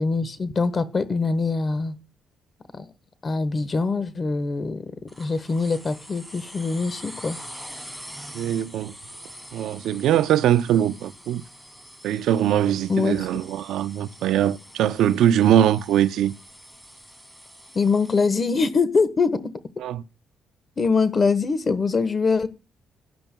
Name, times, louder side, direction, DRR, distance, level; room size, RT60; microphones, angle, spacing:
voice 1, 0.0-2.0 2.7-2.9 3.2-4.9 5.2-7.4 12.9-13.2 17.7-19.4 20.8-22.5, left 4 dB, 35° left, 1.2 m, -23 dB
sound 1, 5.1-18.3, equal, 5° left, 2.1 m, -44 dB
voice 2, 8.3-8.9 9.5-11.4 12.0-16.3 19.8-20.0, right 10 dB, 80° right, 0.5 m, -21 dB
18.0 x 10.0 x 2.3 m
cardioid pair, 90°, 0 cm